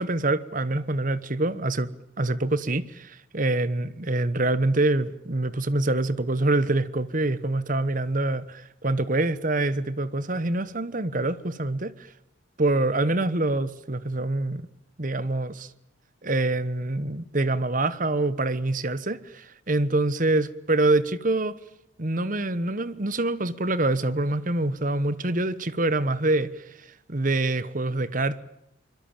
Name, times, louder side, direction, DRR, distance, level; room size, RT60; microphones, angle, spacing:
voice 1, 0.0-1.9 2.2-12.1 12.6-14.7 15.0-15.7 16.2-21.5 22.0-28.4, right 2 dB, 40° right, 1.1 m, -25 dB
25.0 x 22.0 x 9.0 m
head